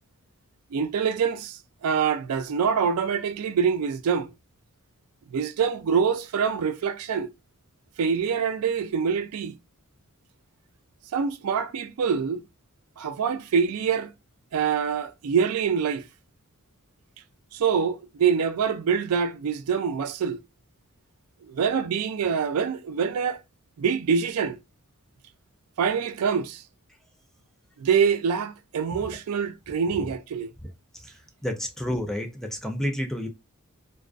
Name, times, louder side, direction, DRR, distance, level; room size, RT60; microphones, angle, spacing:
voice 1, 0.7-4.3 5.3-7.3 8.0-9.6 11.1-12.4 13.0-14.1 14.5-16.0 17.5-20.4 21.5-23.4 23.8-24.6 25.8-26.6 27.8-30.5, right 6 dB, 85° right, 0.4 m, -25 dB
voice 2, 30.6-33.3, equal, ahead, 0.4 m, -31 dB
2.4 x 2.3 x 2.3 m
head